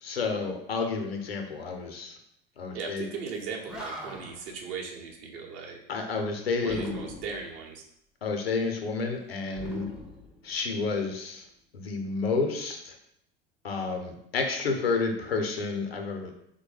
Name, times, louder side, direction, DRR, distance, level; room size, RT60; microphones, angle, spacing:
voice 1, 0.0-2.2 2.6-3.1 5.9-7.0 8.2-9.9 10.4-11.4 11.7-13.0 13.6-16.3, left 4 dB, 85° left, 4 dB, 0.5 m, -30 dB
voice 2, 2.7-5.8 6.6-7.8, right 5 dB, 50° right, 1 dB, 0.7 m, -38 dB
Animal, 3.3-3.4 3.7-4.5 6.7-7.5 9.5-10.9, equal, 5° right, 0.5 m, -41 dB
3.2 x 2.1 x 3.2 m, 0.73 s
figure-of-eight pair, 80°, 29 cm